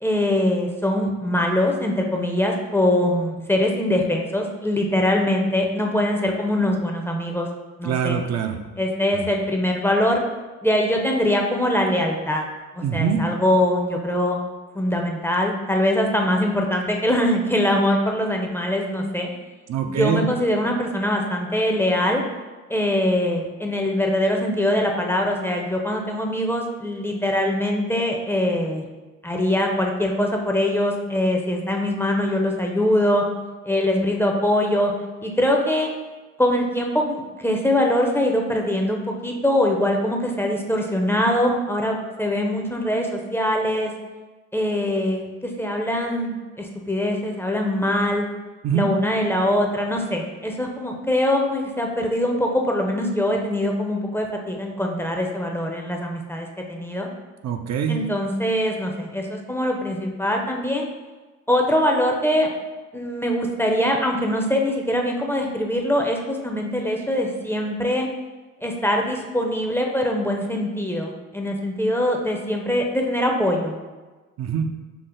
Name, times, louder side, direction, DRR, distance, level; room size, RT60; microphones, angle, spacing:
voice 1, 0.0-7.5 7.8-8.2 8.8-10.2 10.6-12.5 12.8-14.4 14.7-19.3 19.8-22.2 22.7-28.8 29.2-33.2 33.6-34.9 35.2-35.9 36.4-43.9 44.5-48.3 48.7-57.1 57.9-60.9 61.5-62.5 62.9-68.1 68.6-73.7, left 1 dB, 10° left, 1 dB, 0.5 m, -22 dB
voice 2, 7.8-8.6 9.1-9.3 12.8-13.2 19.7-20.2 48.6-48.9 57.4-58.0 74.4-74.7, right 7 dB, 60° right, 5 dB, 0.5 m, -23 dB
5.8 x 2.1 x 3.8 m, 1.3 s
cardioid pair, 90°, 30 cm